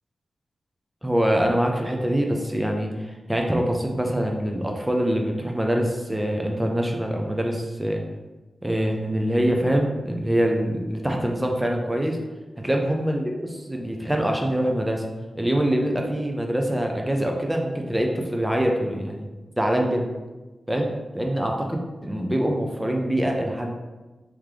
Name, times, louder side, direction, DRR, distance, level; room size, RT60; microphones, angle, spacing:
voice 1, 1.0-8.0 8.6-12.2 12.6-15.0 15.4-19.3 19.6-20.1 20.7-23.7, right 1 dB, 15° right, 1 dB, 0.6 m, -24 dB
3.2 x 3.0 x 3.7 m, 1.2 s
cardioid pair, 60°, 0 cm